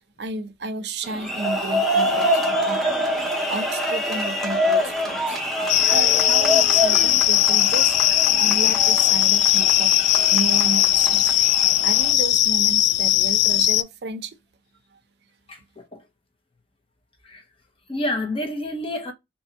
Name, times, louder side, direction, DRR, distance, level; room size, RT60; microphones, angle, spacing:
voice 1, 0.2-3.0 3.5-5.4 5.6-8.0 8.4-10.0 10.3-11.3 11.8-14.4, right 3 dB, 70° right, 0.5 m, -32 dB
sound 1, 1.0-12.1, equal, ahead, 0.7 m, -26 dB
sound 2, 5.7-13.8, left 13 dB, 85° left, 0.3 m, -19 dB
voice 2, 15.5-16.0 17.2-17.4 17.9-19.1, left 1 dB, 30° left, 0.9 m, -29 dB
2.8 x 2.7 x 4.4 m
head